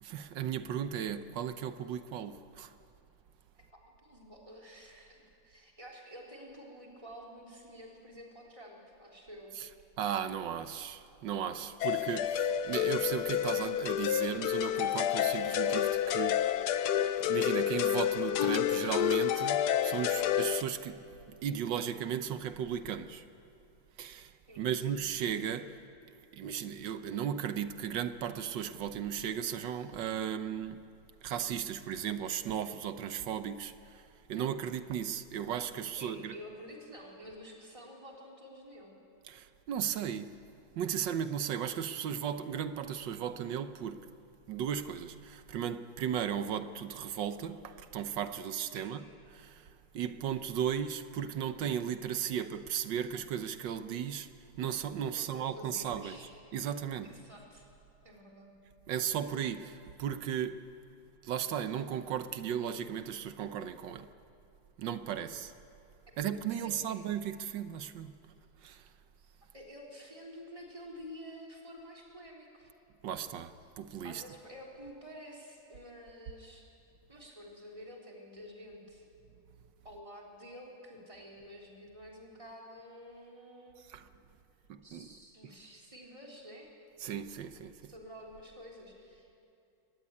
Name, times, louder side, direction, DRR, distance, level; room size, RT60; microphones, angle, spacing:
voice 1, 0.0-2.7 9.6-9.7 10.0-16.5 17.2-23.2 24.0-25.8 26.3-30.8 31.2-36.3 39.3-40.3 40.8-44.1 44.5-49.0 49.3-49.7 49.9-56.2 56.5-57.1 58.9-60.7 61.2-64.1 64.8-65.5 66.2-68.1 68.6-68.9 73.0-74.2 83.9-84.1 84.7-85.1 87.0-87.9, right 9 dB, 80° right, 1.6 m, -36 dB
voice 2, 3.5-9.9 24.5-25.1 35.9-39.0 48.7-48.9 55.1-56.3 57.0-57.7 58.0-58.6 66.1-66.2 66.5-67.0 69.5-72.7 74.0-76.7 77.1-79.0 79.8-83.8 84.8-86.7 87.9-89.3, equal, 15° right, 3.9 m, -50 dB
sound 1, 11.8-20.6, left 11 dB, 70° left, 1.3 m, -29 dB
24.5 x 19.5 x 9.8 m
omnidirectional pair, 2.0 m